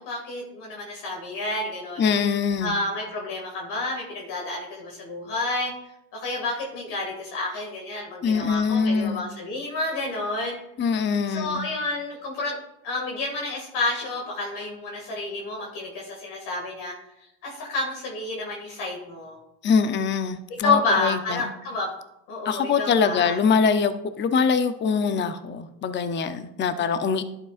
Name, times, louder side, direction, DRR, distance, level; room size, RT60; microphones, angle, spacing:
voice 1, 0.0-2.0 2.6-5.7 6.1-10.6 11.3-12.6 12.8-19.4 20.6-21.9 22.3-23.4 26.8-27.2, left 2 dB, 70° left, -1 dB, 2.3 m, -30 dB
voice 2, 2.0-2.8 8.2-9.3 10.8-11.7 19.6-21.5 22.4-27.2, left 5 dB, 25° left, 10 dB, 0.6 m, -23 dB
11.5 x 7.6 x 2.5 m, 0.85 s
supercardioid pair, 100°, 41 cm